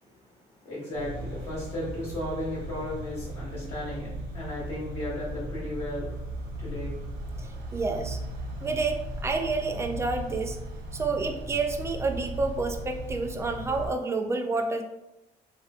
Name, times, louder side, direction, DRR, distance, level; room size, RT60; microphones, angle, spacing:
voice 1, 0.0-6.1 6.6-7.0, left 1 dB, 40° left, -8 dB, 1.2 m, -35 dB
sound 1, 0.9-13.9, right 1 dB, 70° right, 0.7 m, -37 dB
voice 2, 7.4-8.2 8.6-10.6 10.9-14.8, right 3 dB, 15° right, 5 dB, 0.3 m, -29 dB
3.1 x 2.7 x 2.4 m, 0.93 s
cardioid pair, 110°, 17 cm